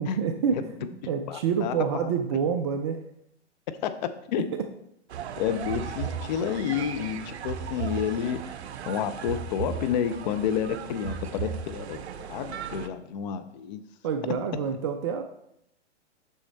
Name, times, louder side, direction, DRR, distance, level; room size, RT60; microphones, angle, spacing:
voice 1, 0.0-3.0 4.4-4.5 14.0-15.2, right 6 dB, 25° right, 6 dB, 0.3 m, -28 dB
voice 2, 1.3-1.7 2.0-2.1 3.8-3.9 4.3-4.4 5.4-8.4 8.9-13.8, left 9 dB, 40° left, 10 dB, 0.6 m, -30 dB
sound 1, 5.1-12.9, right 8 dB, 65° right, 0.8 m, -39 dB
sound 2, 5.6-6.8 7.5-8.6 9.2-10.4 11.0-12.2, right 7 dB, 45° right, 2.9 m, -36 dB
6.3 x 6.3 x 4.1 m, 0.76 s
hypercardioid pair, 125°, 36 cm